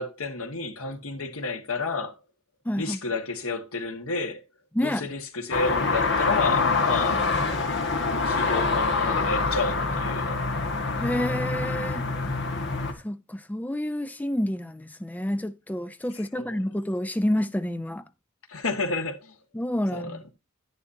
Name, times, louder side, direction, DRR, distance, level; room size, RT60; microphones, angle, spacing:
voice 1, 0.0-2.1 2.8-4.4 4.8-7.2 8.2-10.5 16.3-16.6 18.5-19.3 19.9-20.3, left 3 dB, 85° left, 1.6 m, -31 dB
voice 2, 2.7-3.0 4.7-5.1 11.0-12.0 12.9-18.0 19.5-20.2, left 1 dB, 10° left, 0.4 m, -29 dB
sound 1, 5.5-12.9, left 3 dB, 55° left, 1.6 m, -25 dB
10.5 x 9.8 x 2.7 m
head